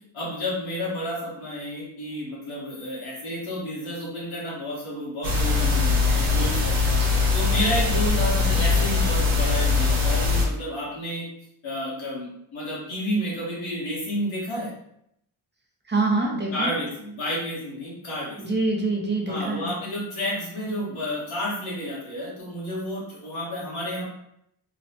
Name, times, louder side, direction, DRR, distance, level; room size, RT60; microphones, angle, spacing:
voice 1, 0.1-6.7 7.0-11.3 11.6-14.7 16.5-18.4 19.3-24.0, equal, 90° left, -6 dB, 1.4 m, -31 dB
sound 1, 5.2-10.5, left 4 dB, 90° right, 0.9 m, -21 dB
voice 2, 15.9-16.7 18.4-19.7, right 2 dB, 25° right, 0 dB, 0.7 m, -25 dB
3.1 x 2.1 x 2.8 m, 0.75 s
cardioid pair, 65°, 47 cm